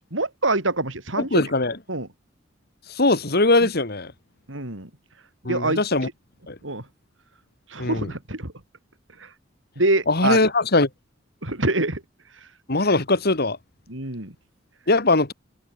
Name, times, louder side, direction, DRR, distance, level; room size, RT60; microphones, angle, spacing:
voice 1, 0.0-1.5 1.9-2.1 4.5-4.9 5.4-5.8 6.6-6.8 7.7-8.5 9.2-9.3 9.8-10.4 11.4-12.0 13.9-14.3, right 2 dB, 85° right, 5.5 m, -25 dB
voice 2, 1.2-1.8 2.9-4.1 5.4-6.1 6.5-6.6 7.8-8.1 10.1-10.9 12.7-13.6 14.9-15.3, left 2 dB, 55° left, 2.4 m, -20 dB
head